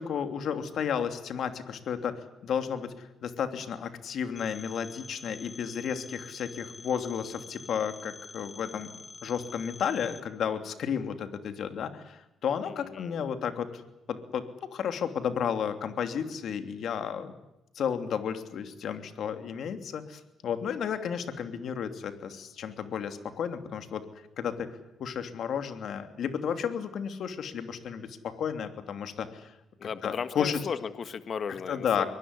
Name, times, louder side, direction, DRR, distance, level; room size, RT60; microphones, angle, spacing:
voice 1, 0.0-8.9 9.2-13.7 14.1-17.3 17.7-24.0 24.4-24.7 25.0-29.5 30.0-30.6 31.7-32.1, left 7 dB, 65° left, 8 dB, 3.0 m, -32 dB
Telephone, 4.4-10.2, left 3 dB, 35° left, 2.4 m, -47 dB
voice 2, 12.7-13.2 29.8-32.0, left 6 dB, 50° left, 11 dB, 1.6 m, -36 dB
23.5 x 20.0 x 9.8 m, 0.92 s
cardioid pair, 90°, 0 cm